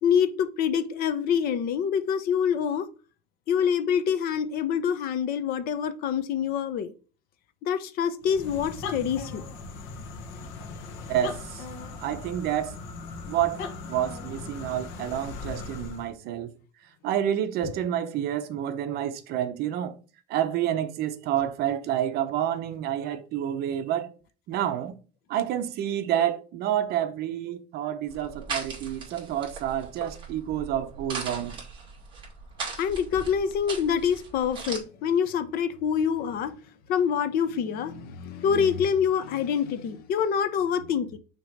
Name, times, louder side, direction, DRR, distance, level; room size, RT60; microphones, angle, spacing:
voice 1, 0.0-2.9 3.5-6.9 7.6-9.4 32.8-36.6 36.9-41.2, left 7 dB, 45° left, 0.7 m, -26 dB
sound 1, 8.2-16.1, left 4 dB, 70° left, 1.1 m, -38 dB
voice 2, 11.1-11.7 12.0-12.8 13.3-16.5 17.0-20.0 20.3-24.1 24.5-25.0 25.3-31.6, right 10 dB, 50° right, 0.8 m, -29 dB
sound 2, 28.1-34.8, right 4 dB, 25° right, 2.4 m, -39 dB
6.3 x 3.0 x 5.1 m
cardioid pair, 170°, 21 cm